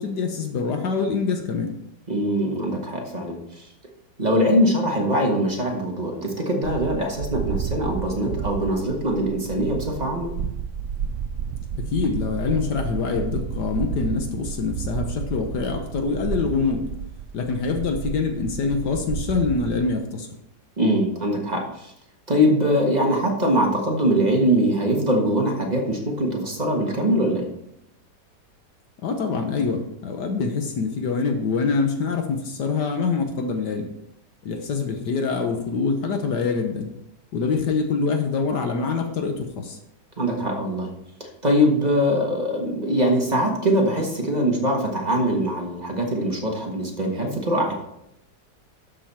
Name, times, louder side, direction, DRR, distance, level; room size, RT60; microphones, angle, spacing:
voice 1, 0.0-1.7 11.8-16.8 17.3-20.3 29.0-33.9 34.4-36.9 37.3-39.8, left 4 dB, 70° left, 5 dB, 1.5 m, -25 dB
voice 2, 2.1-3.7 4.2-10.3 20.8-21.9 22.3-27.5 40.2-40.9 41.2-47.7, equal, 25° right, 0 dB, 1.5 m, -22 dB
sound 1, 6.6-19.9, right 7 dB, 90° right, 0.6 m, -31 dB
12.5 x 5.5 x 4.3 m, 0.81 s
omnidirectional pair, 1.9 m